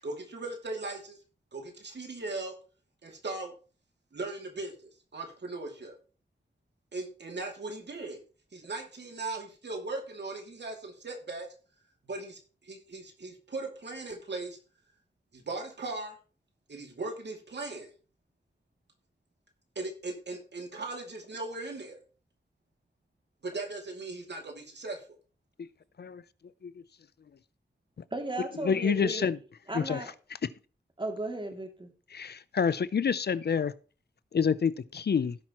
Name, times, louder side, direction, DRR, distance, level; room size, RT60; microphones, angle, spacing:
voice 1, 0.0-1.2 1.5-2.5 3.0-3.5 4.1-6.0 6.9-8.2 8.5-11.5 12.0-14.6 15.3-16.2 16.7-17.9 19.8-22.0 23.4-25.0, right 3 dB, 70° right, 2.5 m, -38 dB
voice 2, 28.1-29.3 29.7-30.1 31.0-31.9, right 2 dB, 25° right, 2.5 m, -35 dB
voice 3, 28.6-29.4 29.7-30.0 32.1-33.7 34.3-35.4, left 6 dB, 60° left, 0.5 m, -27 dB
16.5 x 5.9 x 3.0 m
wide cardioid pair, 65°, 18 cm